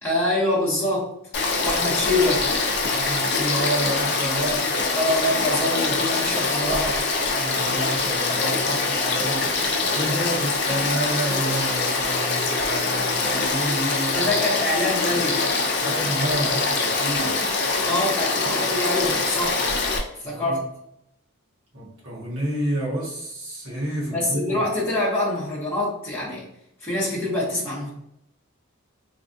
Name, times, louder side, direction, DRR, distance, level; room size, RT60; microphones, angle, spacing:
voice 1, 0.0-1.1 1.6-2.5 4.9-7.0 10.1-10.5 14.1-15.5 17.9-19.7 20.2-20.7 24.1-26.4 26.8-27.9, left 1 dB, 10° left, -8 dB, 1.0 m, -25 dB
Frog / Stream, 1.3-20.0, left 3 dB, 50° left, 0.5 m, -24 dB
voice 2, 2.9-4.7 7.2-14.3 15.8-17.3 20.2-20.6 21.7-24.6, right 1 dB, 70° right, -5 dB, 1.4 m, -30 dB
3.3 x 2.5 x 2.6 m, 0.76 s
head